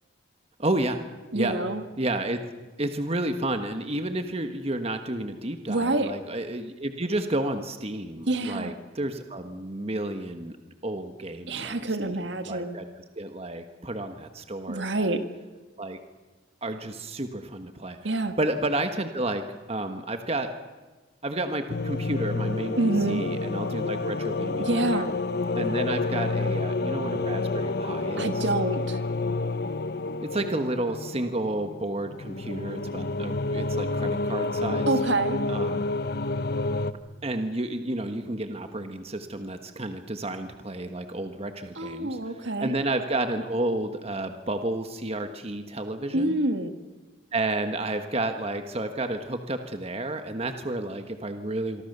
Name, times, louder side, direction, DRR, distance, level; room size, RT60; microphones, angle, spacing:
voice 1, 0.6-1.0 1.3-1.6 2.0-2.4 2.8-10.6 10.8-12.1 12.4-12.9 13.2-15.1 15.8-16.0 16.6-18.0 18.4-19.4 19.7-20.5 21.2-22.8 23.1-25.0 25.5-28.4 30.2-34.9 35.5-35.8 37.2-46.4 47.3-51.8, right 2 dB, 30° right, 7 dB, 1.3 m, -31 dB
voice 2, 1.3-1.8 5.7-6.1 8.3-8.7 11.5-12.8 14.7-15.3 18.0-18.4 22.8-23.2 24.6-25.1 28.2-29.0 34.9-35.4 41.8-42.7 46.1-46.7, right 2 dB, 65° right, 8 dB, 1.9 m, -27 dB
sound 1, 21.7-36.9, left 3 dB, 55° left, 0.8 m, -29 dB
26.0 x 24.0 x 6.8 m, 1.3 s
head